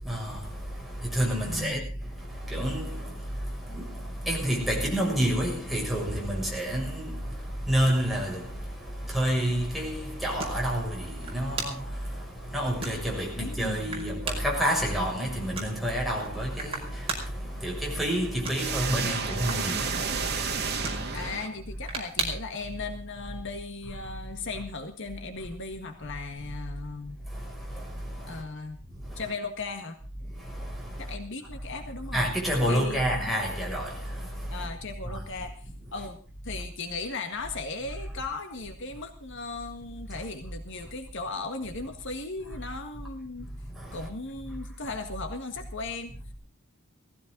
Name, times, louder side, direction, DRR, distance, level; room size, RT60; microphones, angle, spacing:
voice 1, 0.0-21.3 27.3-28.4 29.0-29.2 30.3-31.1 32.1-34.7 35.0-35.2 43.4-44.1, equal, ahead, 6.5 m, -30 dB
voice 2, 1.5-1.8 13.4-14.0 21.1-27.2 28.3-28.8 29.2-30.0 31.0-32.3 32.7-33.4 34.5-36.2 36.4-43.5 43.9-46.1, left 3 dB, 60° left, 1.8 m, -37 dB
sound 1, 11.1-22.6, right 3 dB, 30° right, 5.3 m, -41 dB
sound 2, 18.5-21.9, right 5 dB, 50° right, 2.2 m, -31 dB
18.0 x 15.5 x 3.9 m
head